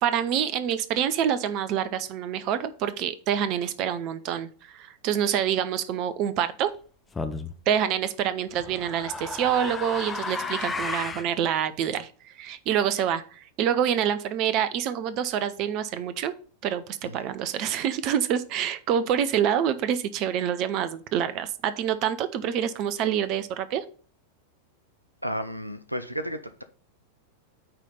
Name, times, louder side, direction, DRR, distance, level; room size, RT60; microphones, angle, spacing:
voice 1, 0.0-6.7 7.7-16.3 16.6-23.8, right 9 dB, 40° right, 0.7 m, -27 dB
sound 1, 7.2-7.5 8.5-11.3, left 3 dB, 15° left, 0.8 m, -33 dB
voice 2, 25.2-26.6, equal, 90° right, 0.6 m, -32 dB
9.1 x 3.3 x 5.5 m
figure-of-eight pair, 90°, 0 cm